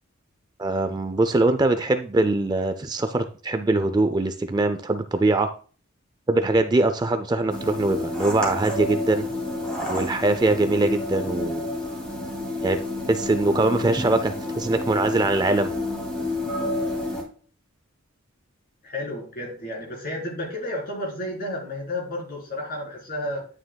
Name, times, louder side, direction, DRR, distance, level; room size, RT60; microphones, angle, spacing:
voice 1, 0.6-5.5 6.3-9.2 9.9-11.7 12.6-12.8 13.1-15.7, right 2 dB, 20° right, 8 dB, 0.4 m, -22 dB
sound 1, 7.5-17.2, left 2 dB, 5° left, 2.4 m, -30 dB
voice 2, 18.8-23.5, left 1 dB, 45° left, -2 dB, 3.8 m, -32 dB
9.5 x 9.0 x 2.3 m, 0.40 s
head